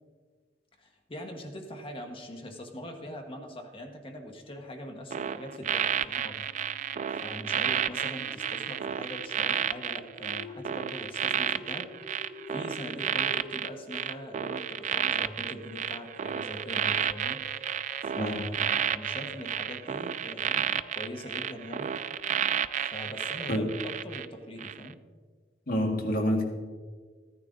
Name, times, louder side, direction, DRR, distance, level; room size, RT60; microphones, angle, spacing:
voice 1, 0.8-6.5 6.7-6.8 7.2-22.0 22.8-25.0, equal, 30° left, 3 dB, 1.2 m, -42 dB
sound 1, 4.4-22.8, left 1 dB, 90° left, 3.5 m, -50 dB
sound 2, 5.1-24.3 24.6-24.9, right 9 dB, 45° right, 0.3 m, -31 dB
voice 2, 18.2-18.5 23.5-23.7 25.7-26.4, equal, 55° left, 1 dB, 1.8 m, -27 dB
14.0 x 9.9 x 3.9 m, 1.5 s
head